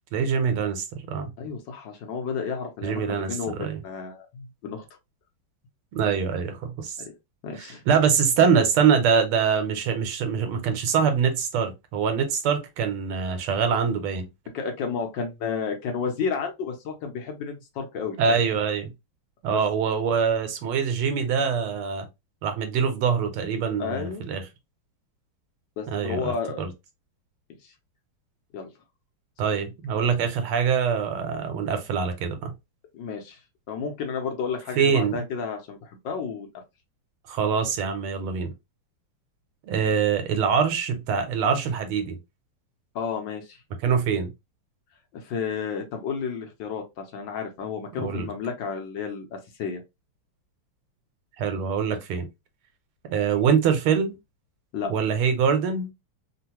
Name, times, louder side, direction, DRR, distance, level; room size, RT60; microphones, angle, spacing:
voice 1, 0.1-1.3 2.8-3.8 5.9-7.0 7.6-14.3 18.2-18.9 19.4-22.1 22.4-24.4 25.9-26.7 29.4-32.5 34.8-35.2 37.3-38.5 39.6-42.2 43.8-44.3 48.0-48.3 51.4-52.3 53.1-54.2 54.8-55.9, right 6 dB, 85° right, 1.6 m, -24 dB
voice 2, 1.4-4.8 7.4-7.8 14.5-18.4 19.5-19.6 23.8-24.2 25.8-26.7 27.6-27.7 28.5-28.7 29.5-29.6 32.9-33.4 33.7-36.5 42.9-43.6 45.1-49.8 54.7-54.9, left 5 dB, 65° left, 1.3 m, -32 dB
3.7 x 2.1 x 2.9 m
omnidirectional pair, 2.3 m